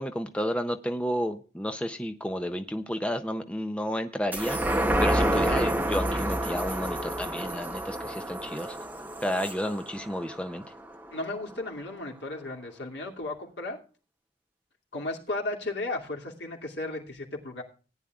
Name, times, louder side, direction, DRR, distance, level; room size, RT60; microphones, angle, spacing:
voice 1, 0.0-8.8 9.2-10.6, equal, 5° left, 7 dB, 0.6 m, -31 dB
sound 1, 4.3-11.1 11.5-11.6, right 1 dB, 10° right, 0.9 m, -29 dB
voice 2, 11.1-13.8 14.9-17.6, left 2 dB, 75° left, 0 dB, 2.6 m, -35 dB
18.0 x 9.9 x 2.4 m, 0.36 s
head